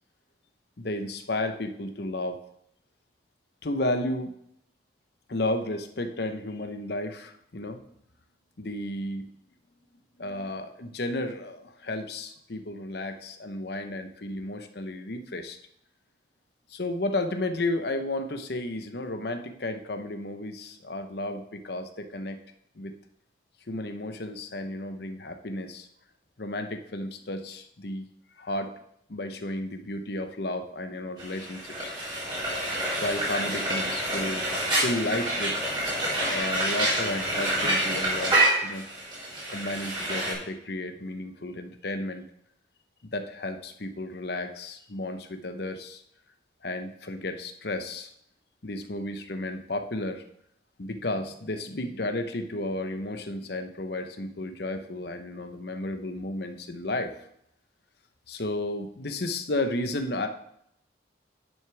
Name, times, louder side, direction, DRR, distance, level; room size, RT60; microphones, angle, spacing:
voice 1, 0.8-2.4 3.6-4.3 5.3-7.8 8.6-9.3 10.2-15.6 16.7-22.4 22.8-23.0 23.7-25.9 26.4-28.1 28.4-28.7 29.1-31.9 32.2-32.6 33.0-34.5 34.7-35.6 36.3-38.9 39.5-42.3 43.0-46.0 46.6-48.1 48.6-50.2 50.8-57.1 58.3-60.3, left 1 dB, 55° left, 7 dB, 0.9 m, -33 dB
Frying (food), 31.2-40.3, right 1 dB, 25° right, 3.9 m, -27 dB
10.5 x 6.3 x 3.4 m, 0.72 s
head